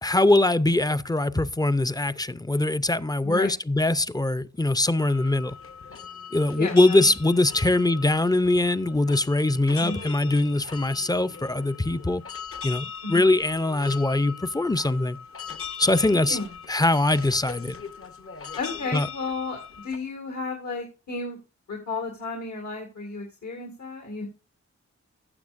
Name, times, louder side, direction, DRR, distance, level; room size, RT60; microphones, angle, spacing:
voice 1, 0.0-5.6 6.3-12.2 12.6-15.2 15.8-16.4 16.7-17.7 18.9-19.1, left 2 dB, 15° left, 0.5 m, -22 dB
sound 1, 5.0-20.0, left 6 dB, 50° left, 0.8 m, -40 dB
voice 2, 6.6-7.1 9.8-10.0 13.0-13.3 16.1-16.6 18.6-21.4 21.7-24.2, left 3 dB, 80° left, 2.0 m, -33 dB
16.0 x 6.9 x 2.5 m
cardioid pair, 60°, 29 cm